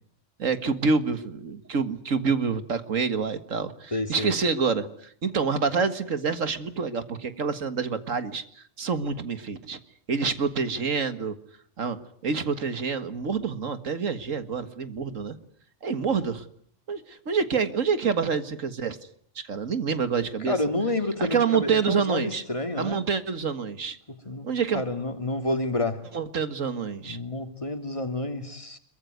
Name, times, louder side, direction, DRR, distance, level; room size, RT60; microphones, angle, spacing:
voice 1, 0.4-9.8 10.1-11.4 11.8-15.4 15.8-16.5 16.9-19.0 19.4-20.6 21.2-22.4 22.8-24.0 24.4-24.8 26.1-27.2, right 5 dB, 85° right, 2.1 m, -27 dB
voice 2, 3.9-4.3 20.5-23.0 24.2-24.5 24.7-26.0 27.0-28.8, left 2 dB, 25° left, 2.8 m, -29 dB
26.5 x 23.0 x 9.5 m
omnidirectional pair, 1.3 m